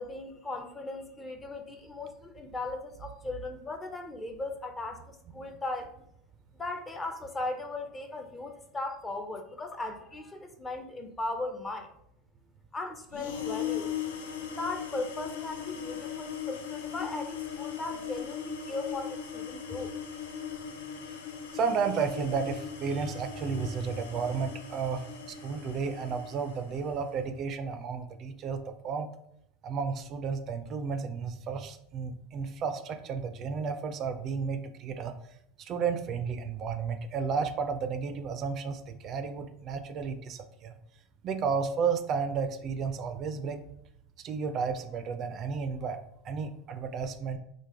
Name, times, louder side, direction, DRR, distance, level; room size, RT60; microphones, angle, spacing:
voice 1, 0.0-5.9 6.6-11.9 12.7-13.9 14.6-19.9, left 2 dB, 20° left, 6 dB, 0.5 m, -37 dB
sound 1, 13.1-27.0, left 8 dB, 85° left, 0.4 m, -39 dB
voice 2, 21.5-29.1 29.6-35.1 35.6-40.7 41.2-43.6 44.2-46.0 46.2-47.4, right 5 dB, 45° right, 8 dB, 0.3 m, -32 dB
3.1 x 2.1 x 3.4 m, 0.76 s
hypercardioid pair, 105°, 0 cm